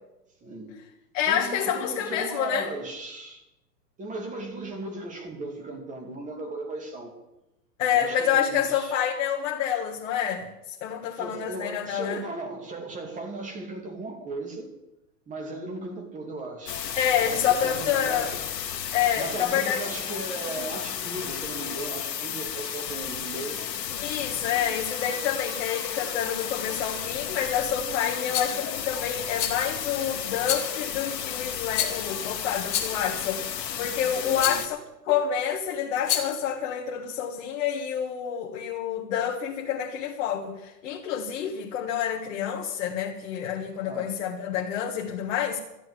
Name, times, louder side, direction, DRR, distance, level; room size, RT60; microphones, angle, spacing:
voice 1, 0.4-0.7 1.2-3.4 4.0-7.1 7.9-9.0 11.2-14.7 15.3-16.8 17.2-18.4 19.1-23.7 34.3-34.6 43.8-44.1, right 2 dB, 15° right, 2 dB, 2.5 m, -37 dB
voice 2, 1.1-2.7 7.8-12.2 17.0-18.3 18.9-19.8 24.0-33.4 33.8-34.8 35.1-45.6, left 9 dB, 50° left, 0 dB, 1.8 m, -28 dB
sound 1, 16.7-34.7, left 9 dB, 80° left, 1.9 m, -33 dB
Rattle, 28.3-28.6 29.4-29.8 30.4-30.8 31.7-32.2 32.7-33.1 34.4-34.7 36.0-36.4, left 10 dB, 10° left, 0.4 m, -29 dB
13.0 x 7.6 x 9.6 m, 0.94 s
hypercardioid pair, 145°, 50 cm